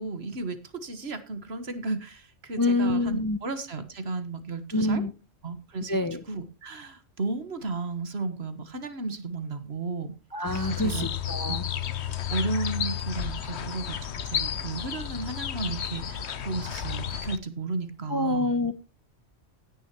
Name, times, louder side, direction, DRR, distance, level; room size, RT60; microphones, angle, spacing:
voice 1, 0.0-5.0 5.4-10.1 10.8-11.1 11.5-11.7 12.3-14.0 14.2-18.5, right 3 dB, 55° right, 10 dB, 1.7 m, -34 dB
voice 2, 2.6-3.4 4.7-5.1 5.9-6.2 10.3-11.6 18.1-18.7, left 2 dB, 20° left, 11 dB, 0.6 m, -26 dB
sound 1, 10.5-17.4, left 9 dB, 65° left, 1.1 m, -32 dB
16.5 x 9.8 x 3.0 m, 0.29 s
omnidirectional pair, 1.3 m